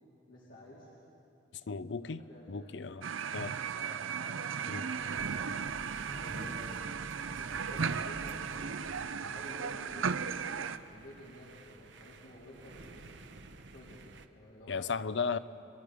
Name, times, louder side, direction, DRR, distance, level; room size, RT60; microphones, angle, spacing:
voice 1, 0.3-0.9 2.0-2.7 3.7-4.1 4.6-5.4 6.1-6.9 7.5-10.1 10.7-13.2 13.7-14.1 14.3-15.0, equal, 80° left, 3.7 m, -52 dB
voice 2, 1.7-2.2 2.5-3.0 3.3-3.6 4.7-4.8 14.7-15.4, left 5 dB, 65° left, 0.6 m, -35 dB
sound 1, 3.0-10.8, right 6 dB, 90° right, 0.6 m, -36 dB
sound 2, 5.0-14.3, right 2 dB, 65° right, 0.9 m, -48 dB
29.5 x 23.5 x 5.1 m
head